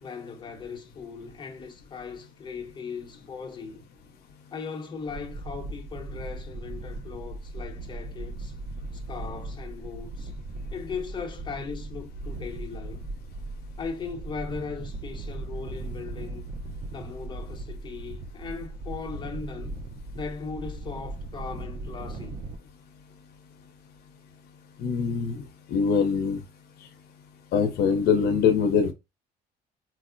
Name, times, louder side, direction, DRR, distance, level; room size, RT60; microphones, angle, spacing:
voice 1, 0.0-3.9 4.5-8.6 8.9-10.3 10.7-13.1 13.8-16.5 16.9-19.8 20.1-22.4, left 5 dB, 30° left, 0.8 m, -38 dB
sound 1, 5.1-22.6, right 2 dB, 45° right, 0.5 m, -38 dB
voice 2, 24.8-25.4 25.7-26.4 27.5-28.9, left 6 dB, 70° left, 0.6 m, -23 dB
4.2 x 2.0 x 2.5 m
cardioid pair, 110°, 17 cm